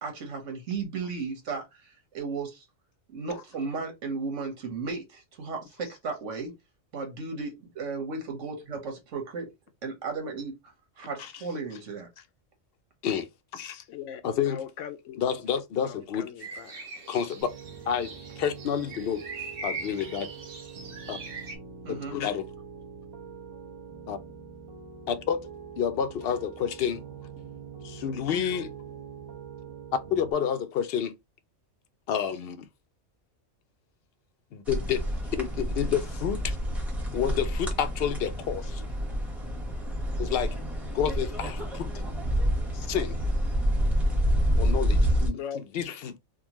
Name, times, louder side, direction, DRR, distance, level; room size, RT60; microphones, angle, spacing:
voice 1, 0.0-2.6 3.1-6.5 6.9-9.5 9.8-10.5 11.0-12.1 21.8-22.2, right 4 dB, 80° right, 1.5 m, -35 dB
voice 2, 13.0-13.8 14.2-14.7 15.2-16.3 17.1-17.5 17.9-19.2 19.6-20.3 21.1-21.2 21.9-22.5 24.1-24.2 25.1-25.4 25.8-27.0 27.8-28.7 30.1-31.1 32.1-32.7 34.5-35.0 35.4-36.6 37.1-38.8 40.2-40.5 40.9-41.9 42.7-43.2 44.6-46.2, left 8 dB, 60° left, 0.7 m, -29 dB
voice 3, 13.9-14.2 14.5-15.2 15.9-16.7 45.3-45.6, left 8 dB, 85° left, 0.9 m, -39 dB
sound 1, 16.4-21.6, right 3 dB, 55° right, 1.0 m, -41 dB
Piano, 17.4-30.3, right 6 dB, 35° right, 0.4 m, -44 dB
sound 2, 34.7-45.3, equal, ahead, 0.9 m, -28 dB
3.6 x 2.3 x 2.9 m
omnidirectional pair, 1.3 m